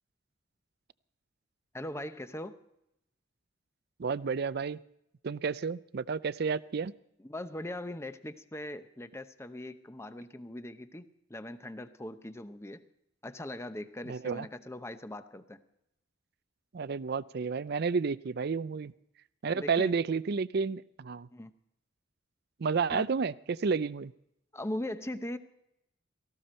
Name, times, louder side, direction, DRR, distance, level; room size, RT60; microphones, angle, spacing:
voice 1, 1.7-2.6 7.2-12.9 13.2-15.6 19.5-19.9 21.3-21.5 22.9-23.1 24.5-25.4, left 1 dB, 15° left, 11 dB, 0.7 m, -40 dB
voice 2, 4.0-4.8 5.2-6.9 14.1-14.5 16.7-18.9 19.4-21.3 22.6-24.1, right 5 dB, 55° right, 18 dB, 0.5 m, -31 dB
18.0 x 15.5 x 4.3 m, 0.81 s
head